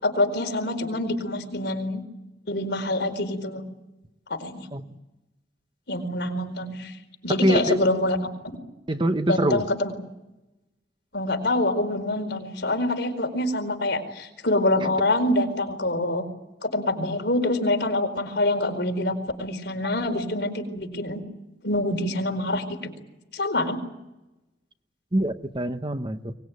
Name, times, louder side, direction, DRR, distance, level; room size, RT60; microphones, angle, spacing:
voice 1, 0.0-2.0 2.5-3.6 4.3-4.7 5.9-7.0 7.2-8.2 9.3-9.9 11.1-16.2 16.6-21.2 21.6-22.9 23.3-23.8, left 1 dB, 60° left, 4 dB, 4.6 m, -25 dB
voice 2, 7.4-7.8 8.9-9.6 25.1-26.3, right 1 dB, 25° right, 9 dB, 1.0 m, -24 dB
23.5 x 20.0 x 9.6 m, 0.98 s
head